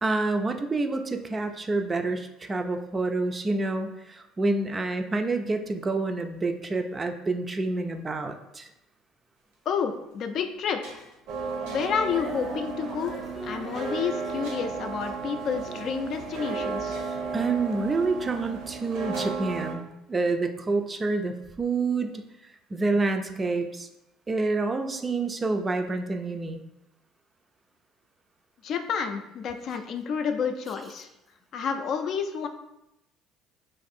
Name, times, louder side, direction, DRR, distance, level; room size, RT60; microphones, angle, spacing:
voice 1, 0.0-8.7 17.3-22.2 22.7-23.9 24.3-26.6, right 3 dB, 25° right, 7 dB, 0.4 m, -28 dB
sound 1, 9.4-9.5 10.1-10.2 10.5-11.3 11.7-12.1 12.8-13.1 14.4-15.0 16.1-16.2 16.5-16.6 16.9-19.7, right 1 dB, 90° right, 1.0 m, -47 dB
voice 2, 9.7-11.0 11.7-13.1 13.4-17.0 28.6-31.1 31.5-32.5, left 6 dB, 55° left, 6 dB, 0.4 m, -30 dB
sound 2, 11.3-19.7, right 5 dB, 65° right, 0.6 m, -34 dB
Female singing, 12.0-18.4 19.0-19.1, left 1 dB, 30° left, 0.7 m, -45 dB
2.6 x 2.5 x 4.1 m, 0.88 s
supercardioid pair, 75°, 0 cm